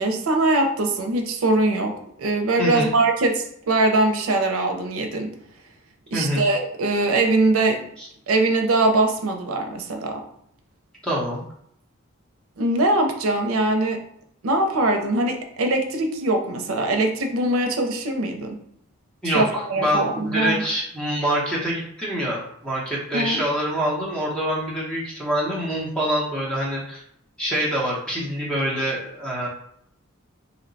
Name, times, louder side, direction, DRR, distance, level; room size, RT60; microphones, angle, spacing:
voice 1, 0.0-5.3 6.1-7.8 8.3-10.2 12.6-14.0 14.4-18.6 19.2-20.6 23.1-23.4, right 2 dB, 80° right, 4 dB, 0.5 m, -22 dB
voice 2, 2.6-2.9 6.1-6.5 8.0-8.1 11.0-11.4 19.2-27.0 27.4-29.5, equal, 5° left, -5 dB, 0.7 m, -25 dB
2.8 x 2.1 x 3.9 m, 0.71 s
head